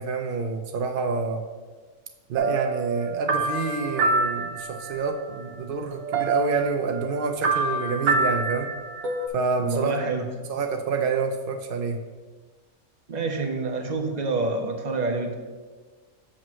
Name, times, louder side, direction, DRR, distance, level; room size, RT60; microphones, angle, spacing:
voice 1, 0.0-1.4 2.3-8.7 9.3-9.9 10.5-12.0, right 4 dB, 90° right, 4 dB, 0.4 m, -27 dB
sound 1, 2.4-5.1 5.5-5.6 5.9-9.3, right 3 dB, 70° right, 1.1 m, -27 dB
voice 2, 9.6-10.2 13.1-15.3, right 3 dB, 40° right, 3 dB, 0.6 m, -27 dB
7.3 x 3.1 x 6.1 m, 1.4 s
omnidirectional pair, 1.5 m